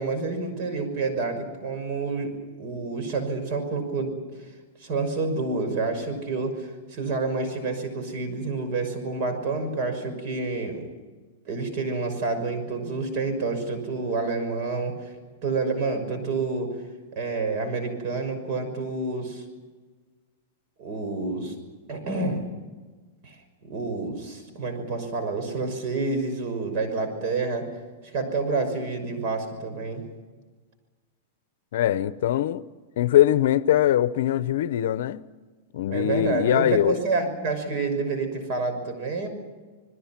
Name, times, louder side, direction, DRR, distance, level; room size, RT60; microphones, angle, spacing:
voice 1, 0.0-4.2 4.8-10.9 11.4-15.1 15.4-16.8 17.1-19.4 20.8-21.6 21.9-22.5 23.2-23.4 23.6-27.7 28.0-30.1 35.9-39.3, right 3 dB, 45° right, 6.0 m, -28 dB
voice 2, 31.7-32.6 33.0-35.2 35.7-37.0, left 12 dB, 65° left, 0.8 m, -22 dB
28.0 x 21.0 x 6.0 m
supercardioid pair, 155°, 0 cm